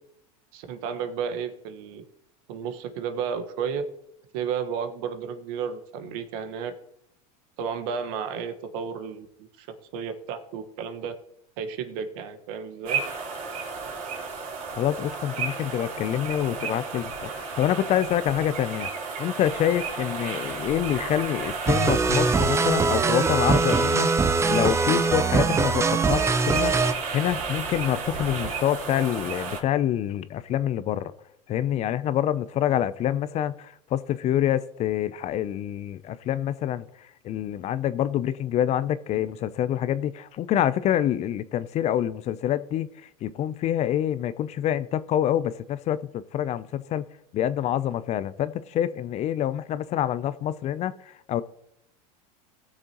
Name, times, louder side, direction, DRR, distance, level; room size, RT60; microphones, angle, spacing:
voice 1, 0.5-2.0 2.5-3.8 4.3-6.7 7.6-9.7 9.9-11.1 11.6-13.0, right 7 dB, 65° right, 1.4 m, -32 dB
sound 1, 12.8-29.6, right 4 dB, 45° right, 3.3 m, -33 dB
voice 2, 14.8-18.9 19.2-31.1 31.5-36.9 37.2-42.9 43.2-47.1 47.3-51.4, left 11 dB, 35° left, 0.5 m, -26 dB
sound 2, 21.7-26.9, right 4 dB, 15° right, 0.6 m, -22 dB
19.0 x 6.6 x 3.0 m
supercardioid pair, 115°, 19 cm